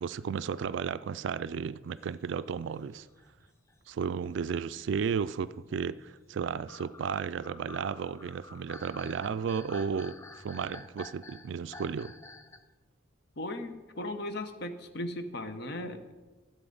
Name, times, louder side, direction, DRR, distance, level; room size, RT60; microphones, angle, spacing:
voice 1, 0.0-3.1 3.9-12.1, right 6 dB, 60° right, 0.3 m, -33 dB
sound 1, 1.9-4.1 4.7-5.8 6.5-12.7, left 3 dB, 15° left, 0.4 m, -50 dB
voice 2, 13.4-16.1, left 1 dB, 55° left, 0.9 m, -37 dB
13.0 x 7.9 x 3.9 m
head